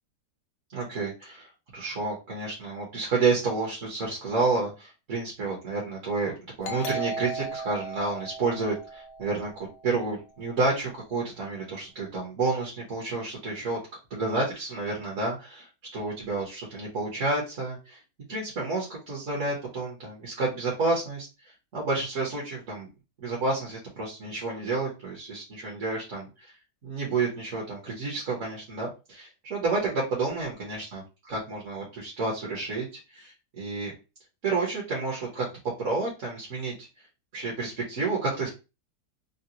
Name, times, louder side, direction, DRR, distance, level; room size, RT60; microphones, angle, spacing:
voice 1, 0.7-6.3 6.6-13.8 14.1-15.7 15.9-18.0 18.3-21.3 21.7-22.9 23.2-26.5 26.8-33.9 34.4-35.4 35.8-36.7 37.3-38.5, right 3 dB, 55° right, -3 dB, 1.4 m, -30 dB
Doorbell, 6.6-10.0, right 2 dB, 80° left, 0.5 m, -36 dB
3.9 x 2.2 x 2.8 m, 0.29 s
omnidirectional pair, 1.7 m